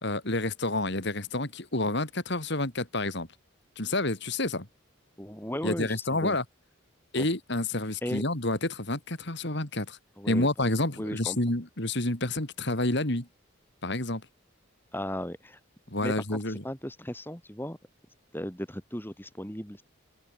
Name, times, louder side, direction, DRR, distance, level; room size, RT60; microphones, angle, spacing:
voice 1, 0.0-3.3 3.8-4.7 5.6-6.4 7.1-10.0 10.2-13.3 13.8-14.2 15.9-16.6, left 2 dB, 55° left, 3.2 m, -29 dB
voice 2, 5.2-6.4 7.1-7.3 8.0-8.2 10.2-10.5 11.0-11.4 14.9-15.6 16.0-17.8 18.3-19.8, equal, 10° left, 5.3 m, -36 dB
open air
head